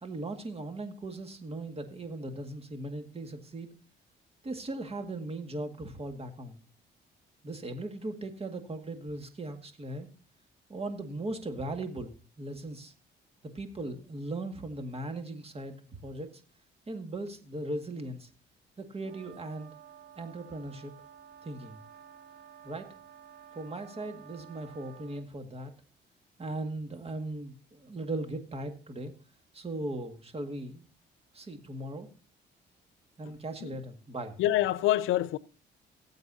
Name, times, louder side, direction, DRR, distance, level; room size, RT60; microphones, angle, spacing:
voice 1, 0.0-3.7 4.4-6.6 7.4-10.1 10.7-12.9 13.4-15.8 16.0-16.3 16.9-18.3 18.8-19.7 20.2-20.9 21.4-21.8 22.6-22.9 23.5-25.7 26.4-29.1 29.5-30.9 31.3-32.1 33.2-34.4, right 2 dB, 30° right, 2.0 m, -38 dB
sound 1, 19.0-25.3, right 9 dB, 55° right, 1.9 m, -52 dB
voice 2, 34.4-35.4, left 14 dB, 90° left, 0.5 m, -26 dB
18.5 x 8.0 x 2.8 m
cardioid pair, 90°, 20 cm